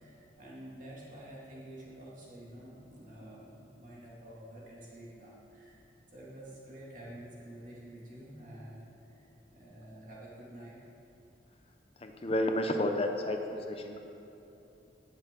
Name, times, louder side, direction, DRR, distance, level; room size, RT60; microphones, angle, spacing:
voice 1, 0.0-3.5 3.8-10.8, right 1 dB, 45° right, -6 dB, 2.4 m, -49 dB
voice 2, 12.0-13.4 13.7-14.0, left 1 dB, 30° left, 4 dB, 0.5 m, -30 dB
17.0 x 6.5 x 3.8 m, 2.9 s
head